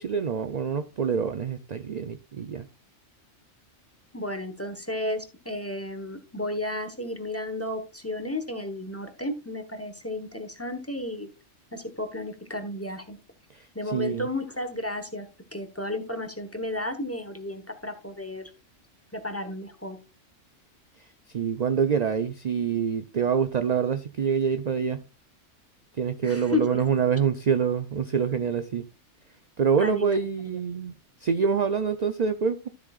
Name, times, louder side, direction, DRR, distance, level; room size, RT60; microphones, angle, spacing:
voice 1, 0.0-2.7 13.5-14.3 21.3-25.0 26.0-28.8 29.6-30.9 31.2-32.7, right 6 dB, 45° right, 0.6 m, -26 dB
voice 2, 4.1-11.3 11.7-13.2 13.7-15.3 15.5-18.5 19.1-20.0 26.2-26.8 29.8-30.1 30.4-30.6, left 2 dB, 10° left, 1.2 m, -33 dB
13.0 x 7.6 x 2.4 m
omnidirectional pair, 1.3 m